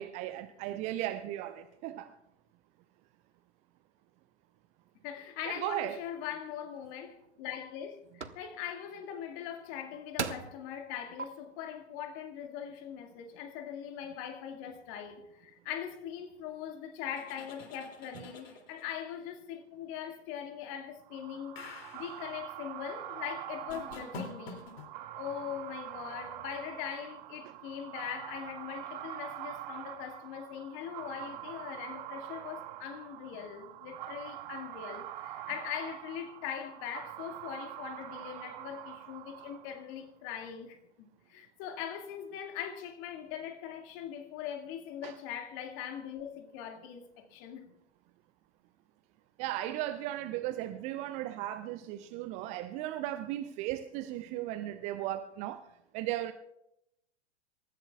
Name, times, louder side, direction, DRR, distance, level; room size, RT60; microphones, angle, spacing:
voice 1, 0.0-2.1 5.5-6.0 45.0-45.1 49.4-55.6 55.9-56.3, right 13 dB, 20° right, 0.4 m, -36 dB
voice 2, 5.0-21.6 21.9-24.6 25.1-47.7, left 9 dB, 35° left, 2.1 m, -41 dB
sound 1, 6.8-6.9 7.5-7.8 8.2-8.4 9.6-9.7 10.2-10.6 11.2-11.3, right 5 dB, 80° right, 1.0 m, -36 dB
sound 2, 17.1-19.0 21.5-22.2 23.7-24.9, left 3 dB, 60° left, 2.8 m, -46 dB
sound 3, 21.1-40.0, right 13 dB, 45° right, 1.0 m, -45 dB
27.0 x 14.5 x 2.3 m
figure-of-eight pair, 100°, 34 cm